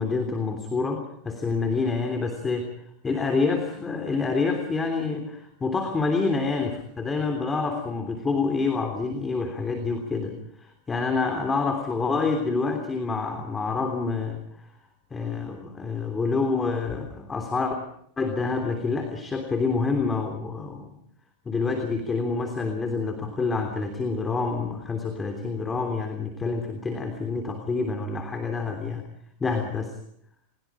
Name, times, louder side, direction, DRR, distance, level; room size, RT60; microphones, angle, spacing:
voice 1, 0.0-2.7 3.0-14.6 15.1-17.8 18.2-20.9 21.4-29.0 29.4-29.9, left 4 dB, 15° left, 5 dB, 3.3 m, -27 dB
29.0 x 21.5 x 5.0 m, 0.70 s
hypercardioid pair, 125°, 0 cm